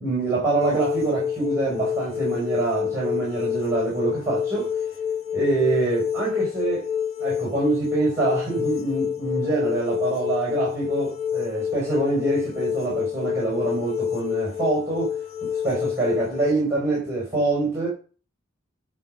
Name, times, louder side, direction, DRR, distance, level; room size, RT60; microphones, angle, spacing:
voice 1, 0.0-4.9 5.3-6.9 7.2-15.1 15.4-17.9, right 3 dB, 15° right, 5.0 m, -25 dB
sound 1, 0.6-16.5, left 8 dB, 35° left, 1.0 m, -28 dB
10.5 x 6.3 x 6.5 m
head